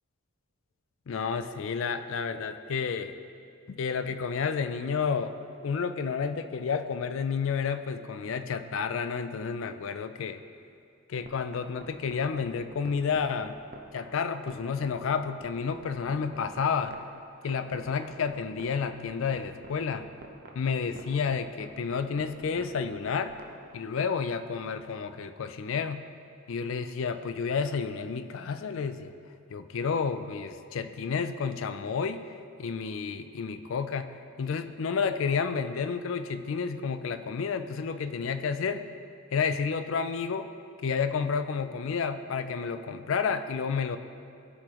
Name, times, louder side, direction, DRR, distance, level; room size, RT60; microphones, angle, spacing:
voice 1, 1.1-3.1 3.7-5.4 5.6-10.4 11.1-13.6 13.9-17.0 17.4-20.1 20.5-23.4 23.7-26.0 26.5-29.1 29.5-32.3 32.6-38.8 39.3-40.5 40.8-44.0, left 5 dB, 65° left, 10 dB, 0.4 m, -30 dB
sound 1, 11.2-24.1, right 2 dB, 40° right, 0.7 m, -47 dB
14.0 x 4.9 x 3.0 m, 2.5 s
head